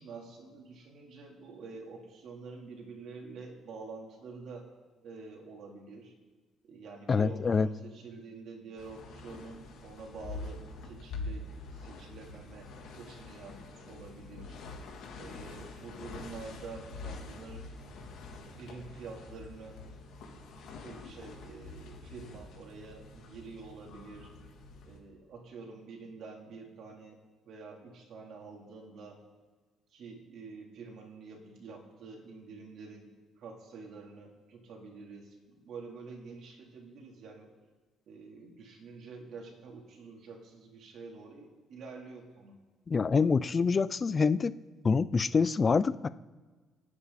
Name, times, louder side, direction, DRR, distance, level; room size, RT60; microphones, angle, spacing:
voice 1, 0.0-4.7 5.0-6.1 6.6-14.6 15.2-17.7 18.5-19.8 20.8-24.3 24.8-27.2 27.5-29.2 29.9-37.5 38.1-42.5, right 4 dB, 60° right, 0 dB, 3.6 m, -47 dB
voice 2, 7.1-7.7 42.9-44.5 44.8-46.1, left 5 dB, 25° left, 16 dB, 0.5 m, -26 dB
sound 1, 8.8-25.0, left 3 dB, 70° left, 3.0 m, -45 dB
29.0 x 9.8 x 4.2 m, 1.4 s
cardioid pair, 145°, 0 cm